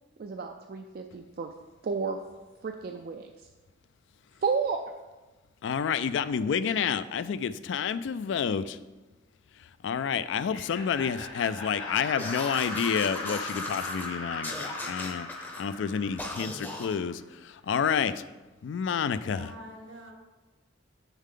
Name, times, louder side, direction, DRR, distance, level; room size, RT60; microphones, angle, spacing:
voice 1, 0.2-1.5 1.8-2.2 2.6-3.5 4.4-4.8, right 5 dB, 50° right, 4 dB, 0.3 m, -31 dB
voice 2, 5.6-8.8 9.8-15.3 15.6-18.2 18.6-19.5, left 7 dB, 70° left, 14 dB, 0.3 m, -29 dB
Laughter, 10.4-17.1, left 3 dB, 90° left, 1.3 m, -39 dB
sound 1, 12.2-14.1 14.4-15.6 16.2-17.0, left 1 dB, 10° left, 0.6 m, -38 dB
voice 3, 19.2-20.1, right 1 dB, 75° right, 0 dB, 1.6 m, -46 dB
7.1 x 6.5 x 3.7 m, 1.2 s
head